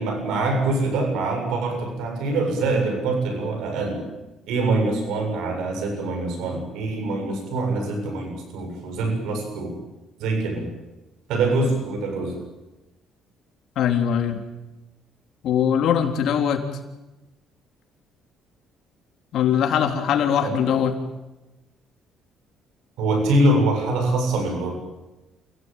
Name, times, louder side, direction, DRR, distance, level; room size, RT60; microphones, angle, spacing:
voice 1, 0.0-4.1 4.5-9.8 10.2-10.7 11.3-12.4 20.4-20.6 23.0-24.7, right 2 dB, 85° right, 3 dB, 7.6 m, -24 dB
voice 2, 13.8-14.4 15.4-16.7 19.3-20.9, left 8 dB, 65° left, 5 dB, 3.8 m, -21 dB
28.5 x 18.0 x 9.2 m, 1.0 s
cardioid pair, 125°, 0 cm